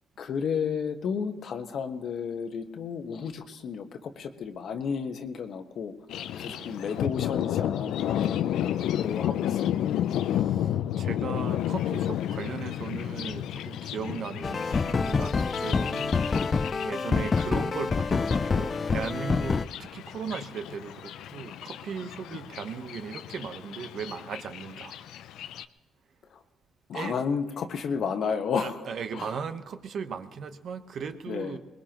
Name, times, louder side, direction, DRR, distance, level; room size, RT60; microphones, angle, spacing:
voice 1, 0.2-5.9 6.3-9.7 26.3-26.4 26.9-28.9 29.1-29.4 31.3-31.6, left 6 dB, 65° left, 7 dB, 1.3 m, -32 dB
Thunder, 6.1-25.7, left 11 dB, 85° left, 0.5 m, -32 dB
voice 2, 6.4-6.8 10.2-25.0 26.9-27.2 28.6-31.6, right 6 dB, 65° right, 8 dB, 1.1 m, -38 dB
sound 1, 14.4-19.7, left 4 dB, 35° left, 0.4 m, -27 dB
22.5 x 20.5 x 3.0 m, 1.1 s
cardioid pair, 90°, 0 cm